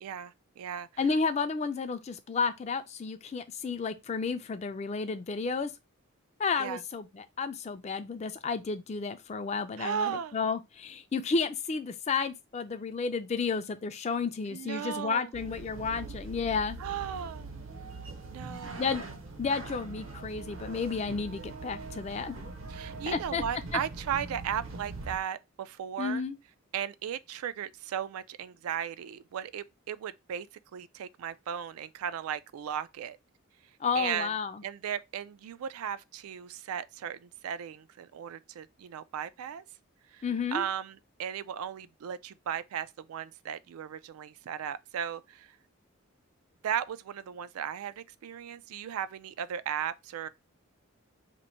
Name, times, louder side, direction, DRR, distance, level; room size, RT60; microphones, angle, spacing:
voice 1, 0.0-0.9 6.6-6.8 9.8-10.3 14.5-15.3 16.8-17.5 18.3-19.1 22.7-26.2 26.7-30.5 30.7-33.2 34.0-34.3 34.6-39.6 40.1-40.2 40.5-45.6 46.6-50.3, right 8 dB, 90° right, 0.3 m, -36 dB
voice 2, 1.0-5.7 6.4-16.8 18.8-19.0 19.4-22.4 23.1-23.4 23.7-23.8 26.0-26.4 33.8-34.6 40.2-40.6, left 5 dB, 30° left, 0.3 m, -32 dB
sound 1, 15.3-25.2, right 3 dB, 70° right, 0.7 m, -42 dB
3.0 x 2.5 x 4.2 m
head